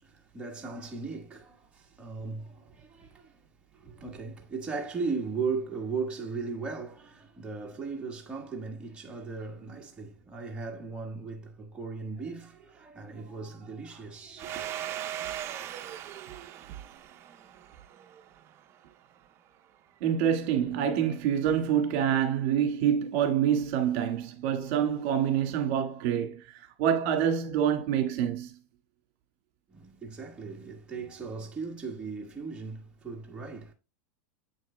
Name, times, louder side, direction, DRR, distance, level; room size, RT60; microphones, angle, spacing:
voice 1, 0.0-14.7 29.7-33.7, right 4 dB, 15° right, 1.4 m, -37 dB
Domestic sounds home sounds, 14.4-18.8, right 11 dB, 35° right, 0.6 m, -39 dB
voice 2, 20.0-28.5, right 9 dB, 50° right, 1.7 m, -27 dB
8.0 x 6.3 x 2.2 m
supercardioid pair, 130°, 8 cm